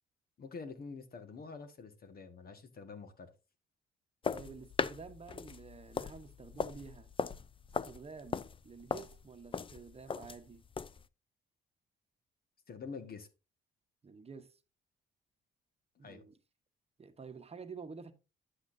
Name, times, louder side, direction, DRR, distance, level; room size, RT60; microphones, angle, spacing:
voice 1, 0.4-3.3 12.7-13.3 16.0-16.2, left 4 dB, 50° left, 1.6 m, -47 dB
sound 1, 4.2-11.1, left 5 dB, 25° left, 0.4 m, -39 dB
voice 2, 4.3-7.1 7.8-10.6 14.0-14.6 16.0-16.4 17.0-18.1, right 5 dB, 30° right, 1.1 m, -50 dB
10.0 x 8.3 x 2.7 m
cardioid pair, 90°, 20 cm